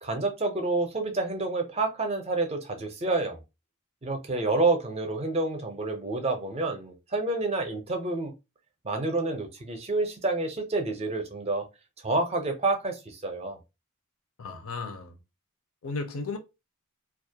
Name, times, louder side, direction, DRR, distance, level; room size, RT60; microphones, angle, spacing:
voice 1, 0.0-3.4 4.0-8.3 8.8-11.6 12.0-13.6, right 2 dB, 30° right, 0.5 m, -28 dB
voice 2, 14.4-15.2 15.8-16.4, left 3 dB, 65° left, 0.5 m, -34 dB
2.3 x 2.1 x 2.7 m
head